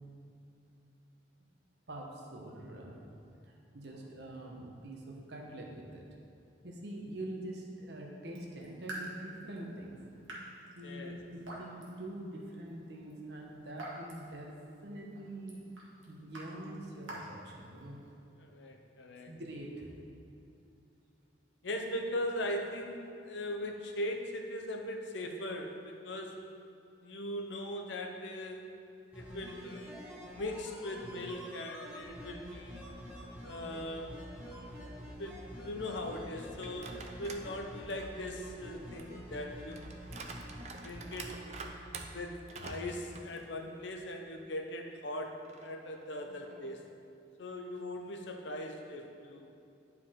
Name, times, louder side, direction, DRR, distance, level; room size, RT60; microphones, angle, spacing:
voice 1, 1.9-3.1 3.5-6.0 6.6-10.0 10.7-14.5 14.8-15.7 16.1-18.0 19.3-19.9, right 1 dB, 60° right, 0 dB, 1.0 m, -44 dB
Raindrop / Drip, 8.2-18.1, right 1 dB, 85° right, 1.6 m, -49 dB
voice 2, 10.8-11.2 18.4-19.3 21.6-26.5 27.0-28.8 29.1-30.0 30.3-32.8 33.4-34.2 35.0-39.9 40.8-41.4 42.1-46.9 47.4-49.5, left 1 dB, 70° left, 3 dB, 0.7 m, -40 dB
sound 1, 29.1-41.7 41.9-42.0, equal, 10° right, 1.4 m, -47 dB
sound 2, 36.6-37.5 37.9-44.0 44.4-44.5 45.4-46.9, right 3 dB, 35° right, 0.4 m, -48 dB
11.0 x 4.7 x 3.7 m, 2.7 s
head